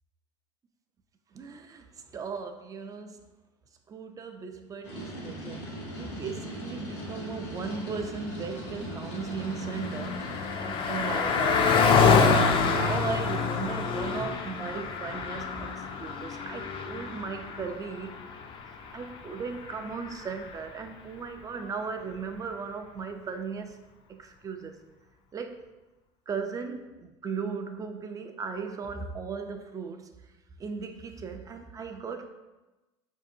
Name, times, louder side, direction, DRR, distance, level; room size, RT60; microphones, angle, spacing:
voice 1, 1.3-3.2 3.9-10.2 10.6-11.8 12.6-18.1 18.9-23.8 24.1-24.8 25.3-25.7 26.3-30.1 30.6-32.3, right 5 dB, 25° right, 6 dB, 0.4 m, -37 dB
sound 1, 4.8-10.5, right 1 dB, 80° left, 1.0 m, -39 dB
Car passing by, 8.9-20.7, left 5 dB, 40° left, 0.4 m, -27 dB
4.6 x 2.7 x 2.5 m, 1.1 s
supercardioid pair, 95°, 13 cm